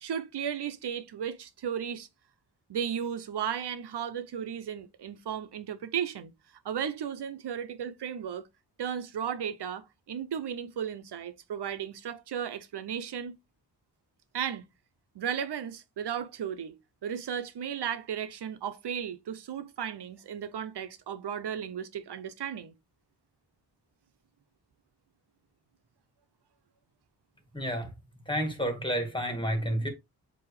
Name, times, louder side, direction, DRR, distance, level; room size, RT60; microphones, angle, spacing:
voice 1, 0.0-2.1 2.7-6.3 6.6-8.5 8.8-13.4 14.3-14.7 15.1-22.8, right 8 dB, 90° right, 1.0 m, -35 dB
voice 2, 27.5-27.9 28.3-29.9, equal, 10° left, 2.2 m, -30 dB
7.7 x 3.1 x 4.9 m
wide cardioid pair, 130°, 39 cm